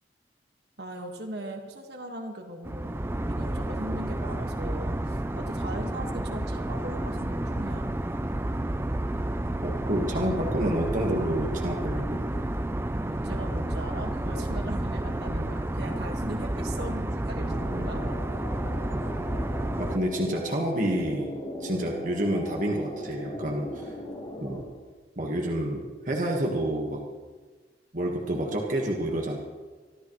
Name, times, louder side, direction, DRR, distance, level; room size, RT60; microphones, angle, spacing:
voice 1, 0.8-3.0 3.3-8.0 13.1-18.0, right 1 dB, 65° right, 2 dB, 1.7 m, -39 dB
sound 1, 2.6-20.0, right 1 dB, 15° right, 0.5 m, -30 dB
voice 2, 9.6-12.2 15.3-15.5 17.3-17.9 19.8-21.3 21.6-23.9 24.4-24.6 25.2-27.0 27.9-29.4, right 1 dB, 45° right, -1 dB, 1.5 m, -29 dB
sound 2, 17.4-24.6, equal, 30° left, 3.8 m, -38 dB
24.5 x 13.5 x 3.2 m, 1.4 s
head